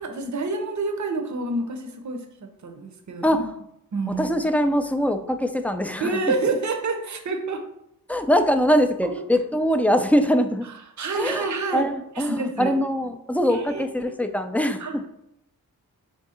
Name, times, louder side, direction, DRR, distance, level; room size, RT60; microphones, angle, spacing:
voice 1, 0.0-3.4 3.9-4.3 6.0-7.6 9.0-9.1 11.0-11.9 12.2-12.7 13.5-13.8 14.8-15.1, right 3 dB, 55° right, 5 dB, 0.7 m, -28 dB
voice 2, 4.2-6.2 8.1-10.7 11.1-15.0, equal, 5° left, 7 dB, 0.3 m, -22 dB
3.7 x 3.5 x 4.1 m, 0.79 s
wide cardioid pair, 85°, 36 cm